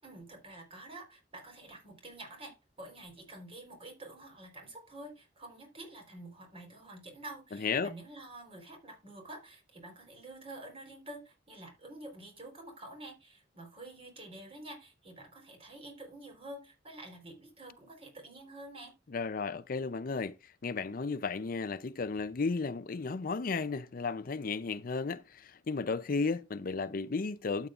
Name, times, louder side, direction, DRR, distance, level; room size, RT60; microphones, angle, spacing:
voice 1, 0.0-18.9, right 2 dB, 35° right, 4.1 m, -48 dB
voice 2, 7.5-7.9 19.1-27.7, left 4 dB, 50° left, 0.5 m, -34 dB
12.5 x 8.5 x 2.5 m
head